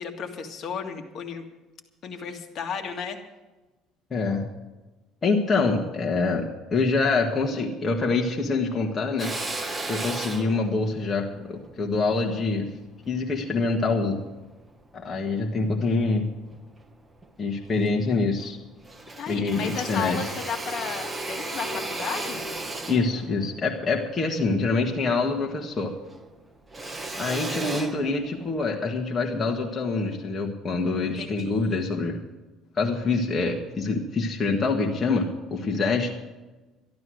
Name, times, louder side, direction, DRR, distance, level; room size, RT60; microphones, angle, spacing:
voice 1, 0.0-1.4 2.0-3.2 19.2-22.4 31.2-31.9, left 6 dB, 45° left, 4 dB, 1.9 m, -34 dB
voice 2, 4.1-4.5 5.2-9.3 9.8-12.7 13.0-14.2 14.9-16.3 17.4-18.6 19.3-20.3 22.9-25.9 27.2-32.2 32.8-36.1, left 3 dB, 25° left, 0 dB, 1.5 m, -25 dB
Drill, 9.2-13.7 14.3-15.5 15.9-16.8 17.2-17.3 17.6-18.6 18.8-25.5 25.8-28.7, right 2 dB, 15° right, 1.1 m, -36 dB
13.0 x 12.0 x 6.3 m, 1.1 s
cardioid pair, 135°, 0 cm